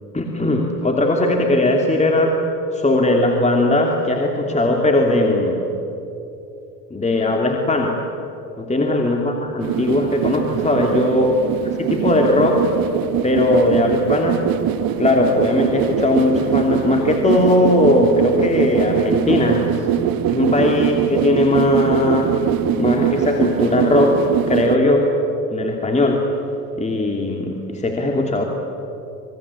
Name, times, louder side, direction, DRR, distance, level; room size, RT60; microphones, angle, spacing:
voice 1, 0.1-2.4 2.7-5.6 6.9-8.0 8.6-11.3 11.9-12.7 13.2-14.5 15.0-19.7 20.3-22.4 22.8-25.1 25.5-26.3 26.8-28.4, left 1 dB, 15° left, 2 dB, 2.9 m, -18 dB
sound 1, 9.6-24.8, right 10 dB, 45° right, 1.5 m, -22 dB
27.0 x 22.5 x 8.5 m, 2.9 s
hypercardioid pair, 95°, 48 cm